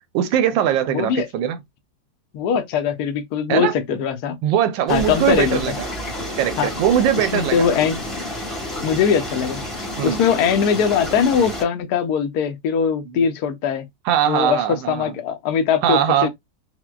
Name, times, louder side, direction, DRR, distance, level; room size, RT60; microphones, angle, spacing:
voice 1, 0.1-1.6 3.5-4.0 4.4-5.9 6.4-7.7 10.0-10.2 13.1-13.2 14.0-15.1 15.8-16.3, right 10 dB, 80° right, 1.4 m, -21 dB
voice 2, 0.9-1.3 2.3-4.4 4.9-5.6 6.6-6.7 7.2-8.0 8.8-9.6 10.0-13.9 14.3-16.3, left 7 dB, 70° left, 1.0 m, -21 dB
sound 1, 4.9-11.6, left 1 dB, ahead, 0.6 m, -30 dB
5.8 x 2.1 x 2.3 m
omnidirectional pair, 2.0 m